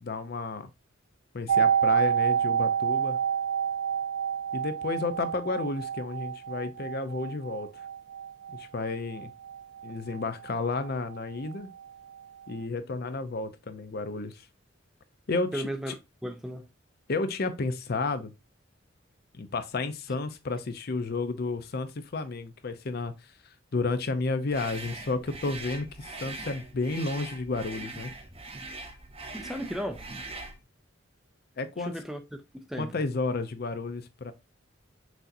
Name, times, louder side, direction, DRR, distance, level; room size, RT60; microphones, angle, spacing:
voice 1, 0.0-0.7 1.3-3.2 4.5-7.7 8.5-9.3 9.8-11.7 12.5-14.5 15.3-15.7 17.1-18.3 19.3-28.1 31.6-31.9 32.8-34.3, left 3 dB, 50° left, 0.5 m, -32 dB
sound 1, 1.5-11.2 11.5-11.6, right 8 dB, 90° right, 0.3 m, -29 dB
voice 2, 15.5-16.7 29.3-30.1 31.8-32.2 32.5-32.9, equal, ahead, 0.4 m, -35 dB
sound 2, 24.5-30.6, right 3 dB, 30° right, 0.7 m, -41 dB
6.1 x 2.8 x 2.6 m
head